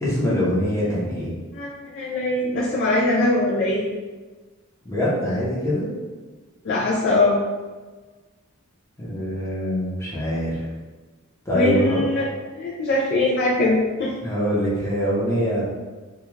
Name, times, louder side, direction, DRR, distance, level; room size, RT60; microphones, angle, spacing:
voice 1, 0.0-1.3 4.8-5.9 9.0-10.6 11.5-12.0 14.2-15.6, equal, 15° left, -7 dB, 0.7 m, -23 dB
voice 2, 1.9-3.8 6.7-7.4 11.5-12.2 12.6-14.1, left 2 dB, 50° left, -3 dB, 0.3 m, -21 dB
2.3 x 2.2 x 3.0 m, 1.3 s
head